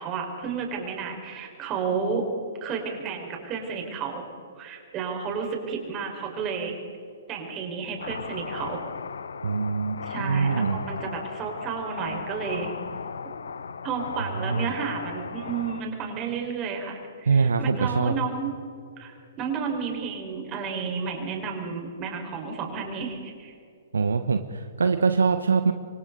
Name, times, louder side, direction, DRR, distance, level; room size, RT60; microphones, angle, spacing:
voice 1, 0.0-2.2 2.6-4.2 4.6-6.8 7.3-8.9 10.1-12.7 13.8-18.5 19.0-23.5, right 6 dB, 25° right, 1 dB, 5.0 m, -32 dB
sound 1, 8.0-15.8, left 6 dB, 70° left, 0.8 m, -36 dB
voice 2, 9.4-10.8 14.4-14.7 17.3-18.1 23.9-25.7, right 5 dB, 75° right, 9 dB, 1.1 m, -23 dB
28.0 x 24.5 x 4.1 m, 2.6 s
figure-of-eight pair, 120°, 0 cm